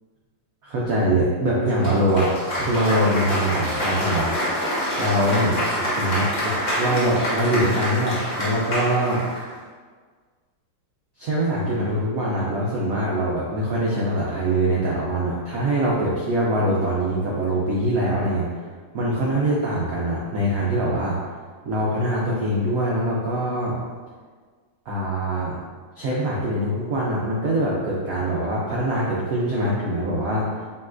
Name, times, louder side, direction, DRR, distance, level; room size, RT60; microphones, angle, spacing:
voice 1, 0.6-4.3 5.0-9.2 11.2-18.5 18.9-21.2 21.6-23.8 24.9-25.6 26.0-30.5, right 1 dB, 85° right, -5 dB, 0.7 m, -23 dB
Cheering / Applause, 1.8-9.5, equal, 50° left, 0.5 m, -26 dB
5.3 x 3.0 x 2.5 m, 1.5 s
omnidirectional pair, 2.3 m